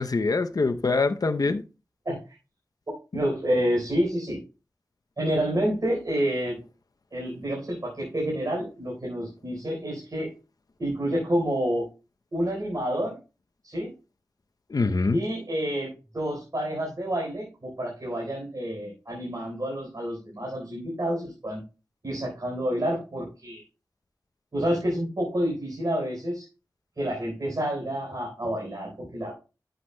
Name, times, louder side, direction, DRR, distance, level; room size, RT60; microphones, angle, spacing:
voice 1, 0.0-1.6 14.7-15.2, left 3 dB, 65° left, 0.7 m, -24 dB
voice 2, 3.1-4.4 5.2-6.6 7.1-10.3 10.8-11.8 12.3-13.1 13.6-13.9 15.1-21.6 22.0-23.6 24.5-26.5 27.0-29.4, equal, 60° right, 4.1 m, -28 dB
11.5 x 7.9 x 2.2 m
wide cardioid pair, 55°, 7 cm